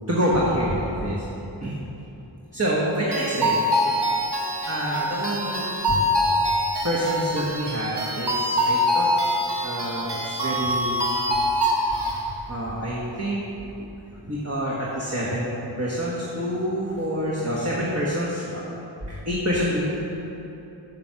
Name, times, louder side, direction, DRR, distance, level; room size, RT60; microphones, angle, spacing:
voice 1, 0.1-1.2 1.6-1.7 2.5-3.6 4.7-6.0 6.8-9.1 9.6-11.0 12.5-13.4 13.8-13.9 14.3-15.5 15.8-18.7 19.1-19.9, equal, 30° right, -6 dB, 1.4 m, -27 dB
sound 1, 3.1-12.2, equal, 55° right, 1.2 m, -24 dB
7.4 x 7.2 x 5.8 m, 3.0 s
wide cardioid pair, 40°, 48 cm